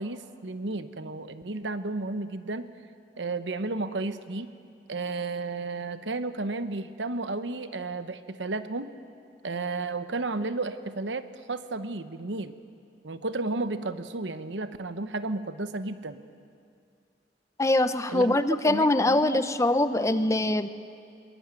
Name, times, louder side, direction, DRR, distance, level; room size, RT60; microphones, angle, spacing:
voice 1, 0.0-2.7 3.2-4.5 4.9-8.9 9.4-12.5 13.0-16.2 18.1-19.4, right 3 dB, 90° right, 11 dB, 1.1 m, -33 dB
voice 2, 17.6-20.7, left 2 dB, 15° left, 11 dB, 0.8 m, -23 dB
22.5 x 21.0 x 9.1 m, 2.4 s
head